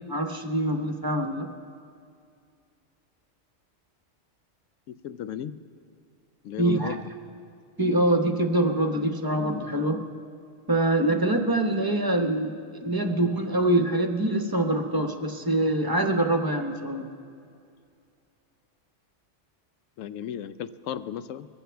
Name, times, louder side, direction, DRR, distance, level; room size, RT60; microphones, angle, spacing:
voice 1, 0.1-1.5 6.6-6.9 7.8-10.0 10.7-17.1, right 1 dB, 20° right, 4 dB, 0.7 m, -24 dB
voice 2, 4.9-5.6 6.4-7.1 13.0-13.2 20.0-21.5, left 9 dB, 90° left, 13 dB, 1.0 m, -35 dB
22.0 x 15.0 x 3.4 m, 2.4 s
omnidirectional pair, 1.3 m